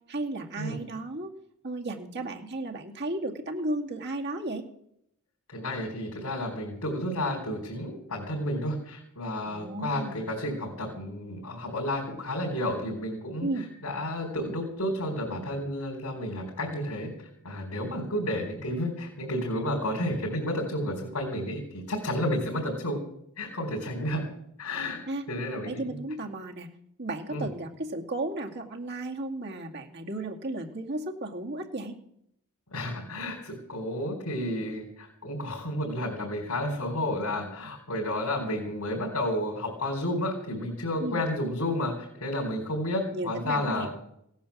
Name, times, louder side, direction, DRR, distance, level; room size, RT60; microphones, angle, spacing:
voice 1, 0.1-1.3 1.6-4.6 9.5-10.2 13.4-13.7 25.1-25.3 25.6-26.7 27.0-32.0 41.0-41.2 43.1-43.9, right 2 dB, 50° right, 2 dB, 2.3 m, -34 dB
voice 2, 5.5-23.0 23.4-24.2 24.6-25.0 25.3-26.0 27.3-27.5 32.7-43.9, left 1 dB, 85° left, -1 dB, 4.6 m, -31 dB
17.0 x 10.0 x 7.3 m, 0.74 s
head